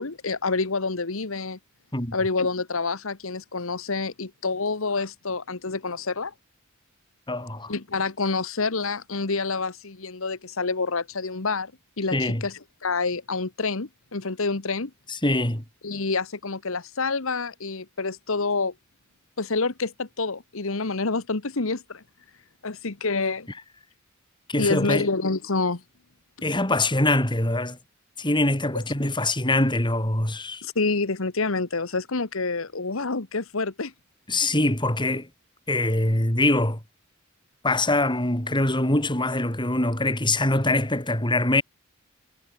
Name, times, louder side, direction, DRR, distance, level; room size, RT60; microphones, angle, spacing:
voice 1, 0.0-1.6 2.1-6.3 7.7-11.7 12.0-14.9 15.8-18.7 19.4-22.0 22.6-23.5 24.6-25.8 28.7-28.8 30.6-33.9, left 3 dB, 70° left, 1.4 m, -27 dB
voice 2, 7.3-7.7 12.1-12.4 15.1-15.6 24.5-25.1 26.4-27.8 28.2-30.6 34.3-35.3 35.7-36.8 37.6-41.6, left 2 dB, 20° left, 5.9 m, -23 dB
head